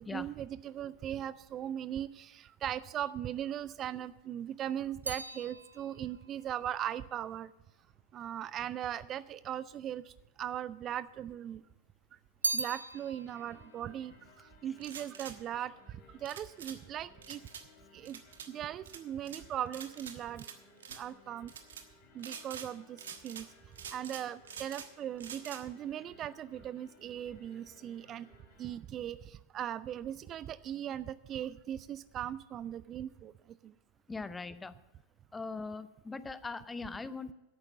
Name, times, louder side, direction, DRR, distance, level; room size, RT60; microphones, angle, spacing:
voice 1, 0.0-7.5 8.1-11.6 12.5-17.4 17.9-18.2 18.5-20.4 20.9-21.5 22.1-23.5 23.9-28.3 28.6-33.3 33.6-33.7, right 10 dB, 30° right, 17 dB, 0.3 m, -39 dB
sound 1, 4.1-8.5 9.3-10.1 10.4-11.5 11.8-15.4 15.7-16.2, right 2 dB, 80° right, 0.6 m, -41 dB
sound 2, 12.8-28.8, left 4 dB, 45° left, 3.0 m, -62 dB
sound 3, 14.8-15.4 16.3-16.8 17.2-17.6 18.1-18.5 18.9-19.4 19.7-20.6 20.8-21.0 21.5-21.8 22.2-22.7 23.0-23.5 23.8-24.9 25.2-25.6, right 7 dB, 65° right, 1.3 m, -46 dB
voice 2, 34.1-34.7 35.3-37.3, left 4 dB, 10° left, 15 dB, 0.6 m, -40 dB
11.0 x 8.8 x 7.2 m, 1.0 s
figure-of-eight pair, 90°, 0 cm